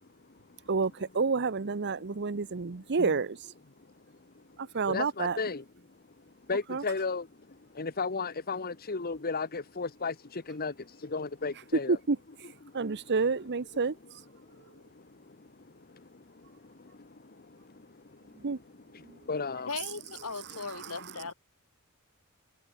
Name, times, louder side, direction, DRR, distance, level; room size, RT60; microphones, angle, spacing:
voice 1, 0.7-3.4 4.6-5.4 6.7-6.8 12.1-12.2 12.7-13.9 18.4-18.6, right 4 dB, 50° right, 0.8 m, -29 dB
voice 2, 1.9-3.2 4.3-4.4 4.8-6.0 6.3-12.0 12.6-13.1 14.0-19.7, left 4 dB, 45° left, 1.1 m, -37 dB
voice 3, 19.7-21.3, left 4 dB, 75° left, 2.4 m, -38 dB
head